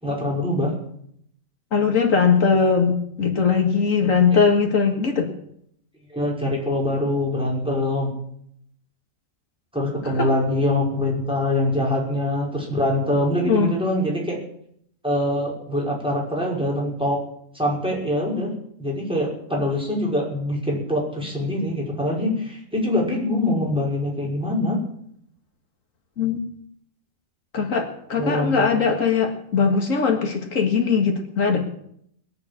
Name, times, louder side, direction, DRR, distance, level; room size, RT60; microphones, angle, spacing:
voice 1, 0.0-0.7 6.1-8.1 9.7-14.4 15.0-17.2 17.5-18.5 18.8-24.8 28.2-28.7, left 1 dB, 5° right, -3 dB, 5.7 m, -24 dB
voice 2, 1.7-5.3 10.0-10.3 13.4-13.7 26.2-26.4 27.5-31.6, left 5 dB, 85° left, 3 dB, 2.2 m, -20 dB
21.0 x 7.7 x 8.6 m, 0.70 s
omnidirectional pair, 1.3 m